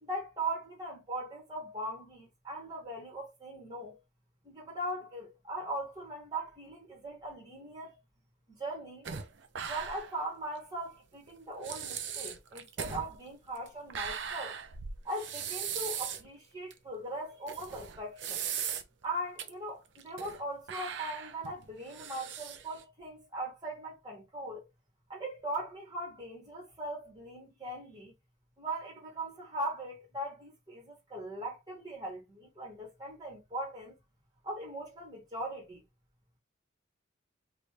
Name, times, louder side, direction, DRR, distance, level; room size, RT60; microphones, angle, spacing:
voice 1, 0.0-4.0 4.4-8.0 8.6-9.1 9.7-14.6 15.0-18.5 19.0-24.7 25.1-28.1 28.6-34.0 34.4-35.8, right 1 dB, 20° right, 1.7 m, -40 dB
sound 1, 9.0-10.2 10.5-10.6 11.3-11.4 11.6-16.3 16.7-16.8 17.5-19.0 19.4-19.5 19.9-20.4 20.7-22.8, right 7 dB, 65° right, 0.5 m, -39 dB
3.2 x 2.7 x 3.1 m
head